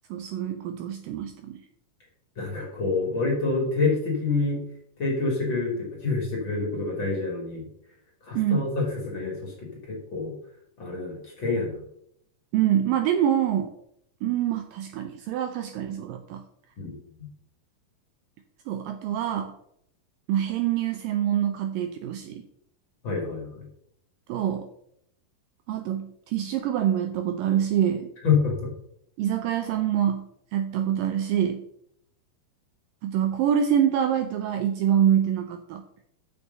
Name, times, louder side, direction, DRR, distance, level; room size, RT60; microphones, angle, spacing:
voice 1, 0.1-1.6 8.3-8.6 12.5-13.7 14.2-16.4 18.7-19.5 20.3-22.4 24.3-24.7 25.7-28.1 29.2-30.3 30.5-31.6 33.0-35.8, right 10 dB, 80° right, 7 dB, 2.1 m, -25 dB
voice 2, 2.4-4.6 5.0-7.7 8.2-10.3 10.8-11.8 16.8-16.9 17.2-17.3 23.0-23.6 28.2-28.7, left 4 dB, 35° left, -1 dB, 2.3 m, -27 dB
7.0 x 6.5 x 6.7 m, 0.73 s
omnidirectional pair, 4.4 m